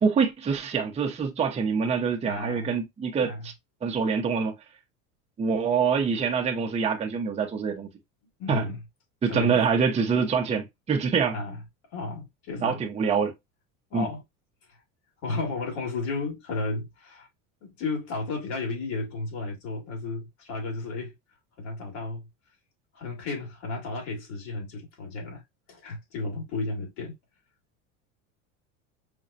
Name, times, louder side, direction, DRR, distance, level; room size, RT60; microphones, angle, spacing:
voice 1, 0.0-3.5 3.8-4.5 5.4-7.9 8.5-8.7 9.2-11.4 12.6-13.3 13.9-14.1, right 6 dB, 15° right, 0.6 m, -25 dB
voice 2, 2.2-2.7 3.2-3.5 8.4-8.8 9.3-9.6 11.3-11.6 11.9-12.8 13.9-14.2 14.7-14.8 15.2-17.3 17.6-21.1 21.6-22.3 22.9-25.4 25.7-27.1, left 3 dB, 75° left, 2.3 m, -33 dB
5.0 x 2.2 x 2.6 m
supercardioid pair, 115°, 39 cm